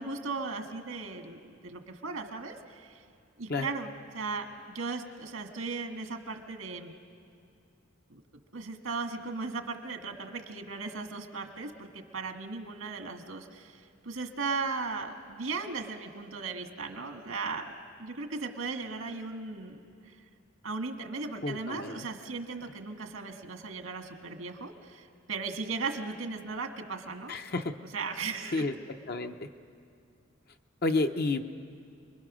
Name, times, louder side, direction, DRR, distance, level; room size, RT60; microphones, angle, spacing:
voice 1, 0.0-3.0 3.4-4.5 4.7-6.9 8.1-8.2 8.5-17.7 18.0-19.8 20.0-20.2 20.6-27.3 27.9-28.7, right 4 dB, 85° right, 4 dB, 1.9 m, -37 dB
voice 2, 21.4-22.1 27.3-27.7 28.5-28.7 29.1-29.5 30.8-31.5, left 3 dB, 50° left, 6 dB, 0.7 m, -30 dB
29.5 x 22.0 x 6.3 m, 2.5 s
head